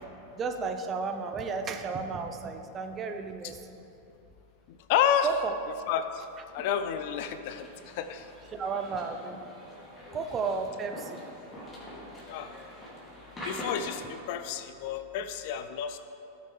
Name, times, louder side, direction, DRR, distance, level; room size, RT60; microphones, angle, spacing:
voice 1, 0.4-3.6 5.2-5.5 8.5-9.4 10.1-11.2, right 4 dB, 25° right, 5 dB, 0.7 m, -33 dB
voice 2, 4.7-5.3 5.9-6.3 6.5-8.3 10.1-10.2 12.3-12.5 13.4-16.0, left 9 dB, 50° left, 10 dB, 0.5 m, -30 dB
sound 1, 7.5-14.2, equal, 15° left, 2.3 m, -44 dB
16.5 x 6.5 x 3.2 m, 2.8 s
figure-of-eight pair, 90°, 0 cm